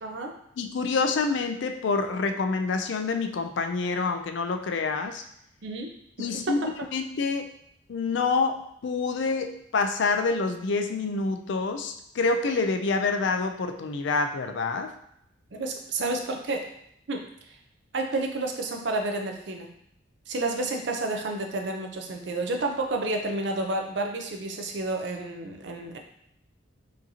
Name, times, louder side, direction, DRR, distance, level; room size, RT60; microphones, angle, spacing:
voice 1, 0.0-0.4 5.6-5.9 6.5-6.6 15.5-16.7 17.1-17.2 17.9-19.7 20.3-26.0, right 2 dB, 60° right, 3 dB, 0.5 m, -30 dB
voice 2, 0.6-5.2 6.2-6.6 6.9-7.5 7.9-14.9, left 4 dB, 65° left, 7 dB, 0.4 m, -27 dB
4.9 x 2.8 x 2.7 m, 0.73 s
head